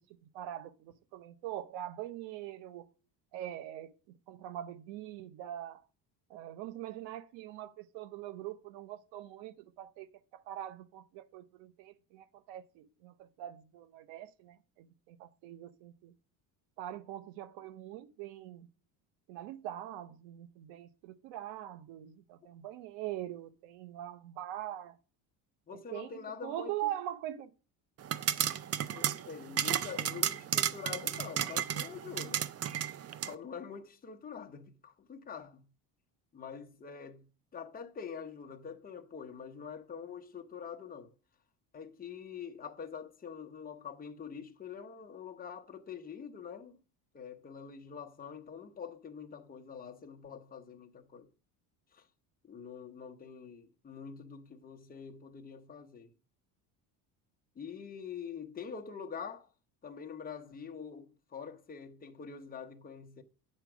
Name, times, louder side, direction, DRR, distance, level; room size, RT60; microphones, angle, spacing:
voice 1, 0.0-2.9 3.3-5.9 6.3-10.1 10.3-16.1 16.8-18.7 19.3-25.0 25.7-27.5, right 12 dB, 90° right, 0.9 m, -43 dB
voice 2, 25.7-26.9 28.7-32.5 33.2-35.7 36.3-41.1 41.7-46.8 47.1-51.3 51.9-52.1 52.4-56.1 57.5-59.5 59.8-63.2, left 6 dB, 20° left, 0.9 m, -45 dB
sound 1, 28.0-33.3, right 10 dB, 35° right, 0.5 m, -33 dB
8.9 x 4.4 x 6.1 m
cardioid pair, 115°, 42 cm